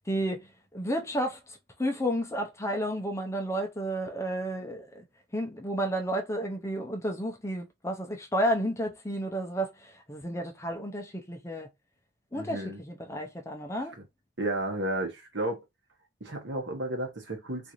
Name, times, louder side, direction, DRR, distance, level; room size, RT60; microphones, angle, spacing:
voice 1, 0.1-0.5 0.7-5.0 5.3-11.7 12.3-14.0, equal, 15° left, 0.5 m, -32 dB
voice 2, 12.3-12.8 14.4-15.6 16.2-17.7, right 1 dB, 60° right, 1.1 m, -32 dB
3.7 x 2.6 x 2.9 m
head